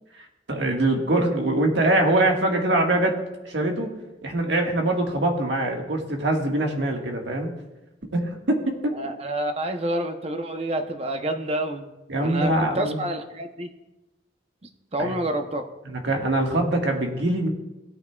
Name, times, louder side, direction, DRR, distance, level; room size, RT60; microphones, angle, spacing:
voice 1, 0.1-3.2 3.4-3.9 4.2-7.5 8.1-8.9 12.1-13.0 15.0-15.1 15.8-17.5, right 1 dB, 90° right, 1 dB, 1.7 m, -23 dB
voice 2, 8.9-11.9 12.2-13.7 14.9-15.7, right 1 dB, 35° right, 6 dB, 0.8 m, -28 dB
17.0 x 8.9 x 2.4 m, 1.0 s
head